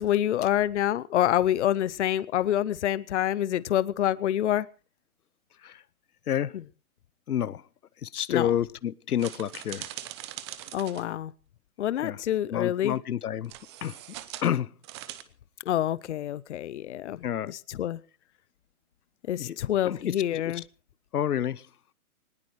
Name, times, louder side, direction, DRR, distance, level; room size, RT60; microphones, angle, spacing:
voice 1, 0.0-4.7 8.3-8.6 10.7-11.3 11.8-13.0 15.7-18.0 19.3-20.6, left 11 dB, 50° left, 0.7 m, -27 dB
voice 2, 7.3-7.6 8.0-9.9 12.0-12.2 12.5-13.5 13.8-14.0 14.4-14.7 17.2-17.5 19.4-19.6 19.8-20.6 21.1-21.7, left 10 dB, 85° left, 0.8 m, -29 dB
sound 1, 9.2-11.1 13.4-14.5 14.8-15.2, right 14 dB, 20° right, 0.8 m, -41 dB
19.5 x 19.5 x 3.1 m
hypercardioid pair, 150°, 44 cm